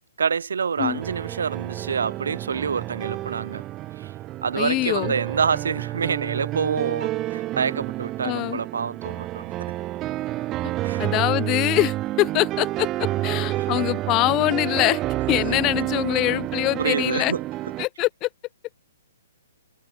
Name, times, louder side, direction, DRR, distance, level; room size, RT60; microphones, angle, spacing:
voice 1, 0.2-3.6 4.0-4.1 4.4-9.5 10.8-11.1 13.6-13.7 15.5-15.6 16.8-17.4, right 6 dB, 70° right, 4.8 m, -27 dB
sound 1, 0.8-17.9, right 16 dB, 25° right, 1.0 m, -29 dB
voice 2, 4.5-5.1 8.2-8.6 11.0-15.0 15.3-17.3 17.8-18.3, left 19 dB, 30° left, 1.0 m, -23 dB
figure-of-eight pair, 125°, 0 cm